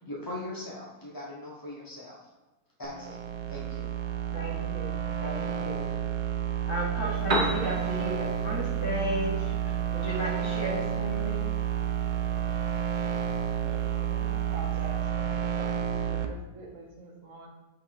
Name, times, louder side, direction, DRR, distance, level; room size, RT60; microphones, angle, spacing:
voice 1, 0.0-2.2 2.8-3.2 3.5-3.9, left 1 dB, 25° left, -5 dB, 0.5 m, -40 dB
sound 1, 2.8-16.3, right 9 dB, 80° right, 1.1 m, -30 dB
voice 2, 4.3-5.9 6.7-11.5, equal, 50° left, -3 dB, 1.9 m, -35 dB
Piano, 7.0-15.1, right 1 dB, 35° right, 0.9 m, -38 dB
voice 3, 13.6-17.5, right 2 dB, 55° right, 0 dB, 1.2 m, -45 dB
5.7 x 5.2 x 3.3 m, 1.1 s
omnidirectional pair, 1.7 m